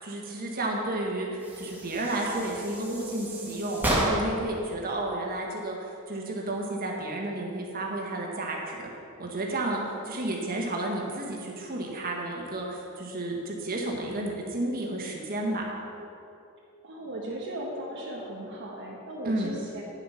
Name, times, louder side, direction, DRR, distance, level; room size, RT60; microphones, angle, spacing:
voice 1, 0.0-8.9 9.2-15.6 19.2-19.5, right 1 dB, 40° right, -1 dB, 1.6 m, -32 dB
sound 1, 1.4-4.5, right 1 dB, 10° right, 1.9 m, -31 dB
voice 2, 3.3-3.6 16.8-19.8, right 1 dB, 55° right, -4 dB, 1.3 m, -37 dB
10.0 x 7.4 x 5.7 m, 2.7 s
head